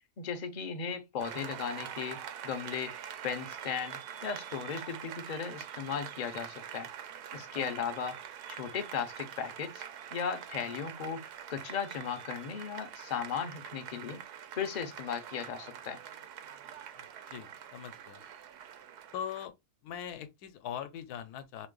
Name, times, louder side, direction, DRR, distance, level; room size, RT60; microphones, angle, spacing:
voice 1, 0.2-2.9 3.2-6.9 7.3-8.2 8.5-9.8 10.1-11.2 11.5-14.2 14.5-16.0, left 7 dB, 60° left, 0.4 m, -36 dB
Applause, 1.2-19.5, right 9 dB, 90° right, 1.2 m, -45 dB
voice 2, 17.0-18.2 19.1-19.5 19.8-21.7, left 9 dB, 85° left, 1.2 m, -41 dB
3.2 x 3.1 x 3.7 m
omnidirectional pair, 1.6 m